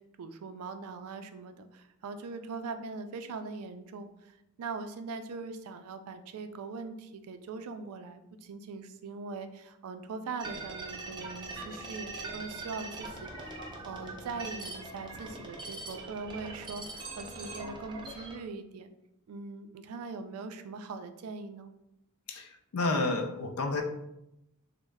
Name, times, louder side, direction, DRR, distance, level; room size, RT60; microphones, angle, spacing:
voice 1, 0.2-13.6 13.8-18.9 19.3-21.7, right 4 dB, 85° right, 9 dB, 0.3 m, -41 dB
sound 1, 10.4-18.4, right 3 dB, 20° right, 0.4 m, -42 dB
voice 2, 22.3-23.8, left 2 dB, 75° left, 6 dB, 0.4 m, -30 dB
3.1 x 2.0 x 3.4 m, 0.85 s
head